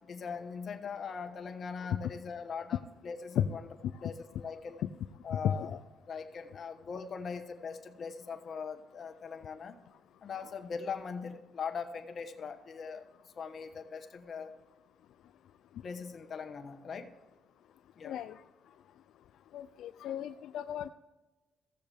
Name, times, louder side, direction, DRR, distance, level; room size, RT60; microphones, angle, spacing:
voice 1, 0.0-3.7 4.0-4.8 5.2-5.8 6.1-9.8 10.2-14.5 15.8-17.1 17.9-18.2, left 5 dB, 50° left, 7 dB, 1.1 m, -41 dB
voice 2, 5.3-5.8 18.0-18.3 19.5-20.9, left 10 dB, 80° left, 9 dB, 0.3 m, -34 dB
16.0 x 7.4 x 3.4 m, 1.2 s
cardioid pair, 90°, 0 cm